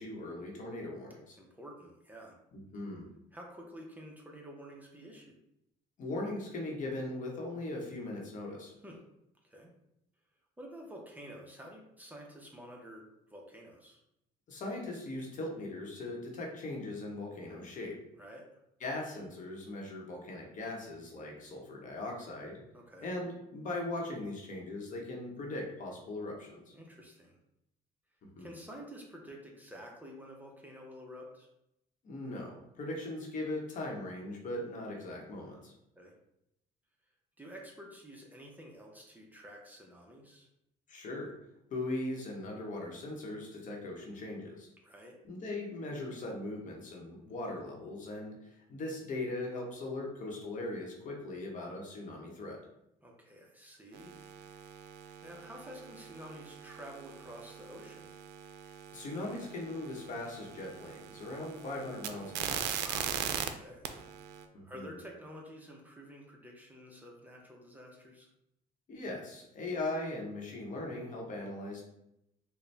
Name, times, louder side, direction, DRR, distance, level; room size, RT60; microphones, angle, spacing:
voice 1, 0.0-1.4 2.5-3.0 6.0-8.7 14.5-18.0 18.8-22.6 23.0-26.7 28.4-28.5 32.0-35.7 40.9-41.3 41.7-44.7 45.2-52.6 58.9-62.7 64.5-64.9 68.9-71.8, left 2 dB, 50° left, 0 dB, 1.0 m, -39 dB
voice 2, 1.4-2.4 3.3-5.4 8.8-9.0 9.4-9.7 10.6-14.0 18.2-18.5 22.7-23.1 26.7-27.4 28.4-31.5 36.0-36.1 37.4-40.5 44.8-45.2 53.0-54.1 55.2-58.1 62.7-63.1 63.4-63.9 64.6-68.3, equal, 10° right, -1 dB, 0.7 m, -50 dB
sound 1, 53.9-63.5 63.8-64.4, right 9 dB, 80° right, 0.4 m, -41 dB
4.1 x 2.2 x 3.3 m, 0.82 s
cardioid pair, 110°, 17 cm